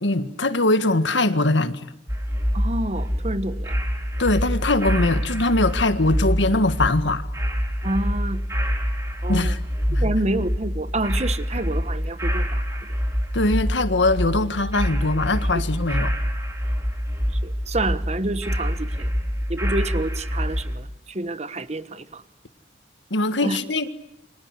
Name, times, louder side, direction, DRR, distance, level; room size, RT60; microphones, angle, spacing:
voice 1, 0.0-1.9 4.2-7.3 9.3-9.6 9.9-10.1 13.3-16.1 23.1-23.9, left 2 dB, 90° left, 1.8 m, -22 dB
sound 1, 2.1-20.8, equal, 15° right, 4.3 m, -26 dB
voice 2, 2.5-3.7 7.8-8.4 9.2-9.5 10.0-12.6 17.4-19.1 19.5-22.2 23.4-23.6, right 2 dB, 40° right, 1.2 m, -28 dB
29.0 x 25.0 x 8.2 m
head